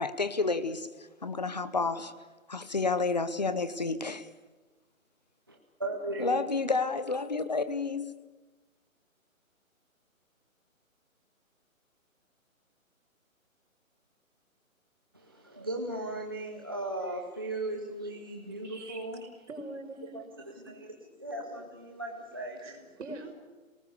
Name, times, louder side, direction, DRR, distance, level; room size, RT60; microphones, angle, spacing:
voice 1, 0.0-2.1 2.5-4.3 6.2-8.1, left 4 dB, 30° left, 13 dB, 0.8 m, -30 dB
voice 2, 5.8-6.4 15.1-19.3 20.1-22.8, right 2 dB, 15° right, 0 dB, 0.7 m, -37 dB
voice 3, 18.6-19.1 19.5-20.2 22.6-23.3, right 2 dB, 55° right, 2 dB, 5.8 m, -43 dB
27.5 x 19.0 x 6.8 m, 1.2 s
hypercardioid pair, 175°, 42 cm